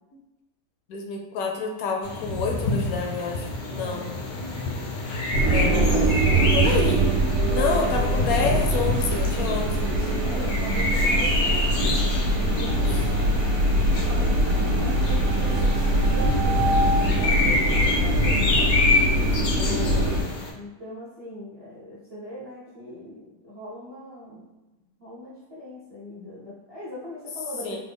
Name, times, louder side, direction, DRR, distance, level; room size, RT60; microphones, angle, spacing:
voice 1, 0.9-4.1 5.5-6.2 6.5-7.0 7.5-9.9 19.5-20.2 27.6-27.8, left 4 dB, 70° left, 1 dB, 0.9 m, -28 dB
sound 1, 2.0-20.5, left 2 dB, 85° left, 1.3 m, -28 dB
voice 2, 3.7-4.1 7.5-7.8 10.2-11.7 12.2-13.2 13.5-18.7 20.5-24.5 25.0-27.8, left 1 dB, 40° right, -8 dB, 0.5 m, -40 dB
sound 2, 5.3-20.2, right 1 dB, 70° right, 1.1 m, -22 dB
3.5 x 2.1 x 3.5 m, 1.0 s
omnidirectional pair, 1.9 m